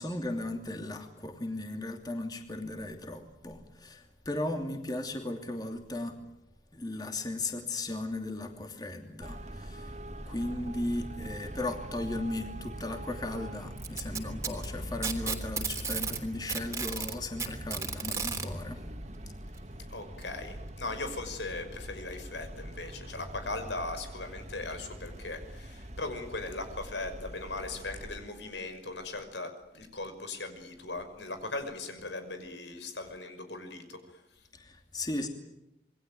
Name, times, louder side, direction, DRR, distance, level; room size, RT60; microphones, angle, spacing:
voice 1, 0.0-6.2 6.7-10.0 10.3-18.8 34.5-35.3, left 2 dB, 20° left, 4 dB, 2.9 m, -36 dB
Traffic noise roadway noise, 9.2-28.2, right 1 dB, 40° right, 2.5 m, -43 dB
Packing tape duct tape, 13.8-16.2 16.5-18.5 19.6-19.7 20.2-20.3 21.2-21.3, right 5 dB, 15° right, 3.3 m, -33 dB
voice 2, 19.9-34.2, left 2 dB, 85° left, 8 dB, 5.9 m, -39 dB
27.5 x 23.0 x 9.4 m, 0.86 s
head